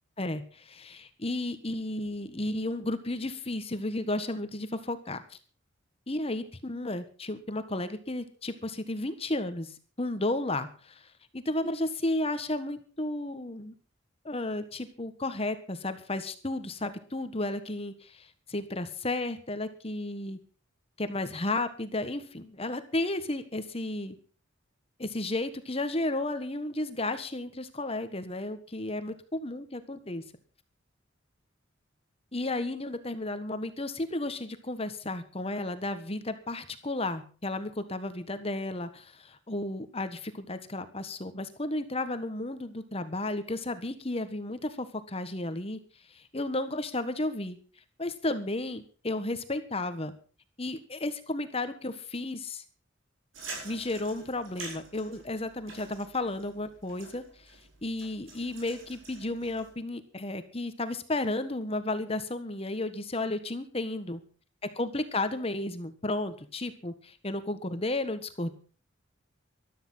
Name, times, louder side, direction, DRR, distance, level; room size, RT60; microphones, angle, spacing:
voice 1, 0.2-5.4 6.1-11.1 11.3-13.7 14.2-20.4 21.0-24.2 25.0-30.2 32.3-45.8 46.1-47.6 48.0-50.1 50.6-52.6 53.6-64.2 64.6-68.5, left 2 dB, 30° left, 10 dB, 1.4 m, -33 dB
sound 1, 53.3-59.7, right 3 dB, 80° right, 6.9 m, -47 dB
14.0 x 13.0 x 5.7 m, 0.38 s
head